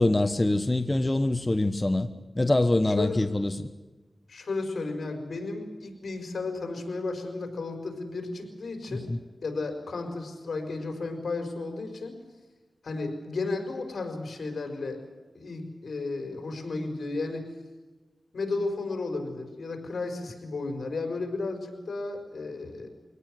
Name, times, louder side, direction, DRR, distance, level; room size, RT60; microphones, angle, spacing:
voice 1, 0.0-2.1 2.3-3.7 8.9-9.2, left 2 dB, 25° left, 9 dB, 1.2 m, -24 dB
voice 2, 3.0-3.3 4.3-9.1 9.4-12.2 12.8-15.0 15.3-17.6 18.3-22.9, left 3 dB, 80° left, 5 dB, 4.9 m, -33 dB
24.0 x 18.0 x 7.9 m, 1.2 s
cardioid pair, 60°, 0 cm